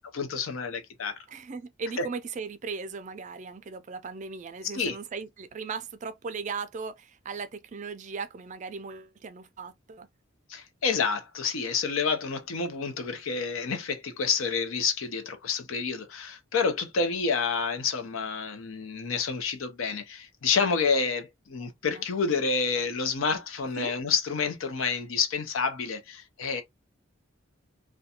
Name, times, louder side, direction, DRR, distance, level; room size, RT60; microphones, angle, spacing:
voice 1, 0.1-1.2 2.0-2.1 4.6-5.0 10.5-26.6, left 5 dB, 75° left, 0.6 m, -29 dB
voice 2, 1.3-10.1 21.6-22.1 23.8-23.9, right 5 dB, 35° right, 0.3 m, -38 dB
2.5 x 2.1 x 2.7 m
head